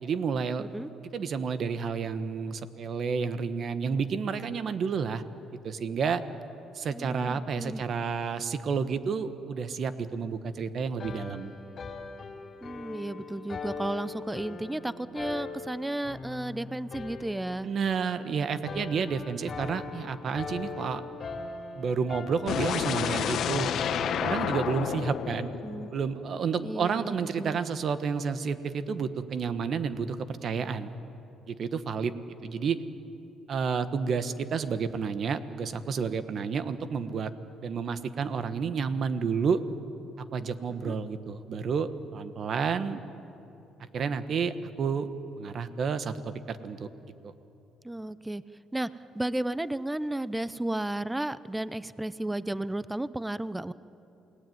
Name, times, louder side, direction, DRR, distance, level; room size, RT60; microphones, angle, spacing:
voice 1, 0.0-0.7 1.1-5.2 5.6-6.2 6.7-11.5 17.6-21.0 21.8-23.7 24.2-25.5 25.9-30.9 31.5-32.1 32.4-32.8 33.5-37.3 37.6-39.6 40.2-43.0 43.9-45.1 45.4-46.9 47.2-47.3, right 6 dB, 50° right, 11 dB, 1.3 m, -30 dB
voice 2, 0.6-0.9 6.9-7.8 12.6-17.7 25.3-25.9 26.6-27.6 40.8-41.0 47.8-48.4 48.7-48.9 49.1-53.7, right 1 dB, 10° right, 16 dB, 0.6 m, -33 dB
sound 1, 11.0-24.7, left 4 dB, 35° left, 2.9 m, -40 dB
sound 2, 22.5-26.4, left 9 dB, 60° left, 1.1 m, -30 dB
29.0 x 19.0 x 9.4 m, 2.9 s
cardioid pair, 115°, 0 cm